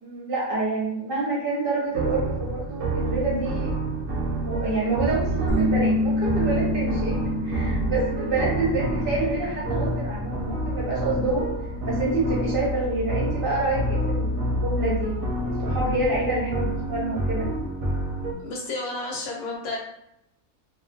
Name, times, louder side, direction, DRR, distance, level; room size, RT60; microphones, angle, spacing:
voice 1, 0.0-3.7 4.4-11.5 11.9-17.5, right 2 dB, 50° right, -5 dB, 0.8 m, -27 dB
sound 1, 1.9-18.3, right 1 dB, 70° right, 0.9 m, -28 dB
sound 2, 5.5-10.9, left 2 dB, 50° left, 1.0 m, -29 dB
voice 2, 18.4-19.8, left 2 dB, 90° left, -2 dB, 1.3 m, -31 dB
2.6 x 2.2 x 2.5 m, 0.81 s
omnidirectional pair, 1.5 m